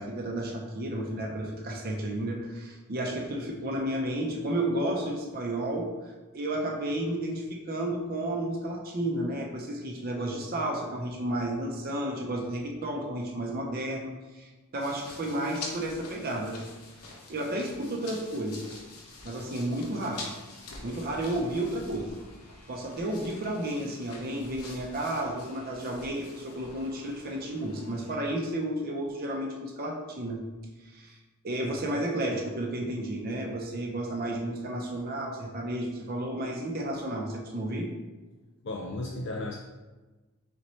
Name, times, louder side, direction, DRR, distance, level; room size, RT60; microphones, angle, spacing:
voice 1, 0.0-16.6 17.0-18.8 19.2-20.3 20.8-22.2 22.7-30.4 30.9-31.2 31.4-37.9, right 1 dB, 40° right, 1 dB, 0.6 m, -32 dB
sound 1, 14.8-28.2, left 2 dB, 80° left, 0.9 m, -46 dB
voice 2, 38.6-39.6, left 2 dB, 50° left, 0 dB, 0.4 m, -34 dB
4.2 x 4.1 x 3.1 m, 1.2 s
head